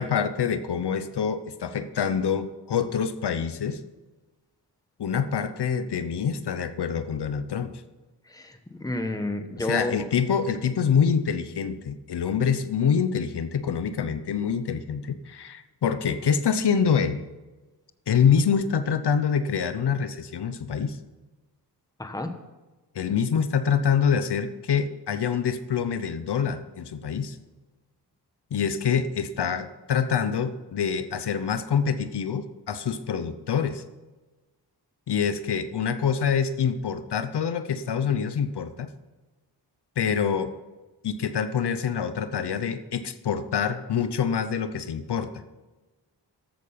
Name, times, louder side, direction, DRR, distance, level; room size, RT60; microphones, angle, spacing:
voice 1, 0.0-3.8 5.0-7.8 9.6-17.2 18.1-21.0 22.9-27.4 28.5-33.8 35.1-38.9 40.0-40.5 41.0-45.3, left 7 dB, 70° left, 11 dB, 0.9 m, -26 dB
voice 2, 8.2-10.1 22.0-22.3, left 2 dB, 10° left, 6 dB, 1.2 m, -30 dB
14.0 x 8.5 x 5.8 m, 1.2 s
wide cardioid pair, 150°, 42 cm